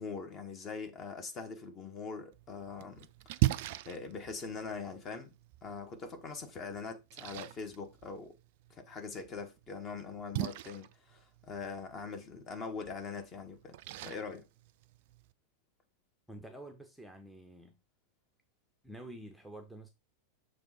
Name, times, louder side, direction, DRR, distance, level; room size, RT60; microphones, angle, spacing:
voice 1, 0.0-3.0 3.3-3.5 3.8-5.3 5.6-8.4 8.7-13.8 14.0-14.5, left 4 dB, 30° left, 1.3 m, -42 dB
Splash splatter, 2.3-15.3, right 16 dB, 50° right, 0.3 m, -40 dB
voice 2, 16.3-17.8 18.8-19.9, right 1 dB, ahead, 0.8 m, -48 dB
6.9 x 3.2 x 4.3 m
figure-of-eight pair, 90°, 0 cm